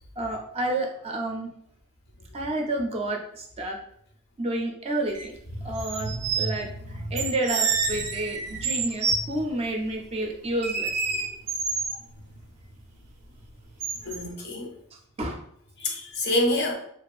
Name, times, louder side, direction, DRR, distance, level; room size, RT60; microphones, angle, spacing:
voice 1, 0.2-1.5 2.3-3.8 4.4-5.3 5.6-11.3 15.2-15.4, right 1 dB, 25° right, 0 dB, 0.4 m, -30 dB
sound 1, 5.2-5.3 5.8-6.5 7.2-9.2 10.6-12.0 13.8-14.2, right 5 dB, 85° right, 0.4 m, -28 dB
voice 2, 5.6-7.2 8.0-8.2 8.5-8.6 9.1-9.2 14.0-14.7 15.8-16.7, left 1 dB, 50° left, 1 dB, 0.5 m, -29 dB
2.4 x 2.4 x 2.3 m, 0.68 s
head